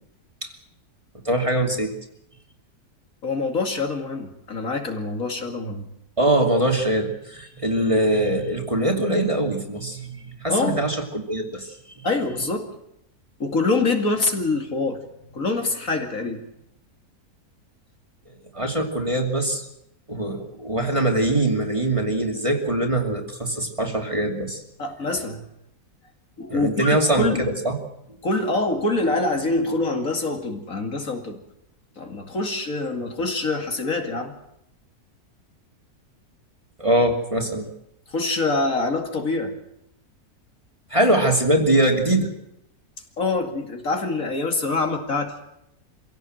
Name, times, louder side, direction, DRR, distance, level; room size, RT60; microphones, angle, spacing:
voice 1, 1.2-1.9 6.2-11.7 12.0-12.1 18.5-19.6 20.1-24.6 26.5-27.8 36.8-37.7 40.9-42.3, right 1 dB, 20° right, 2 dB, 2.7 m, -22 dB
voice 2, 3.2-5.9 10.5-10.8 12.0-12.7 13.4-15.0 15.3-16.4 24.8-25.4 26.4-27.4 28.2-31.4 32.0-34.3 38.1-39.6 43.2-45.3, left 3 dB, 60° left, 3 dB, 2.8 m, -25 dB
24.5 x 17.0 x 7.8 m, 0.79 s
omnidirectional pair, 1.7 m